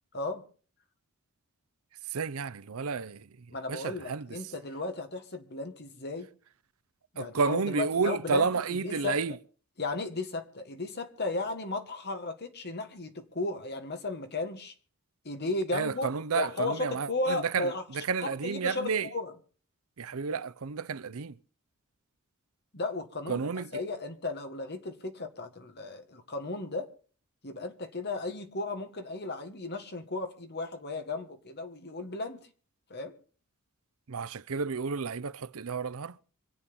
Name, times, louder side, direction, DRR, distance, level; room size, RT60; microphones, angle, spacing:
voice 1, 2.1-3.3 3.7-4.3 7.2-9.3 15.7-19.1 20.0-21.3 23.3-23.8 34.1-36.2, right 5 dB, 80° right, 0.6 m, -31 dB
voice 2, 3.5-6.3 7.1-9.2 9.8-14.7 15.2-19.3 22.7-23.5 23.7-26.9 27.4-32.5 32.9-33.1, left 2 dB, 50° left, 1.9 m, -35 dB
25.5 x 8.5 x 5.4 m
head